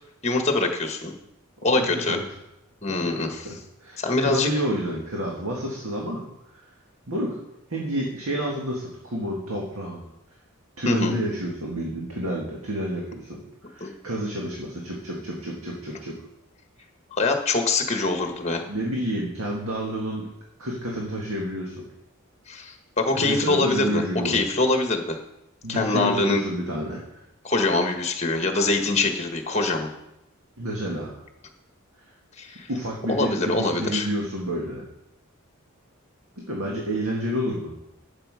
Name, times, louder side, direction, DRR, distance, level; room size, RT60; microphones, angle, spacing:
voice 1, 0.2-1.1 1.6-2.2 2.8-3.4 4.0-4.5 10.8-11.1 13.8-14.0 17.1-18.6 22.5-25.2 25.7-26.4 27.4-29.9 32.4-32.7 33.1-34.1, left 2 dB, 30° left, 5 dB, 1.3 m, -24 dB
voice 2, 1.6-2.2 2.9-6.2 6.5-6.6 7.1-7.4 7.7-10.0 10.8-16.2 18.2-18.3 18.7-20.3 20.6-21.8 23.1-24.4 25.6-27.2 30.6-31.2 32.7-34.8 36.5-37.7, equal, 80° right, -2 dB, 1.9 m, -29 dB
11.5 x 6.6 x 4.9 m, 0.85 s
head